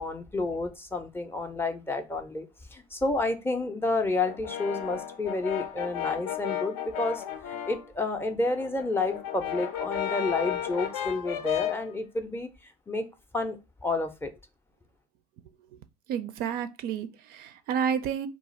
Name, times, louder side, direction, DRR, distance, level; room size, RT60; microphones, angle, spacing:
voice 1, 0.0-13.1 13.3-14.3, left 2 dB, 10° left, 0.4 m, -30 dB
Brass instrument, 4.2-7.9 8.3-11.9, left 10 dB, 70° left, 0.5 m, -33 dB
voice 2, 16.1-18.3, right 8 dB, 50° right, 0.4 m, -30 dB
2.4 x 2.4 x 4.0 m
hypercardioid pair, 85°, 20 cm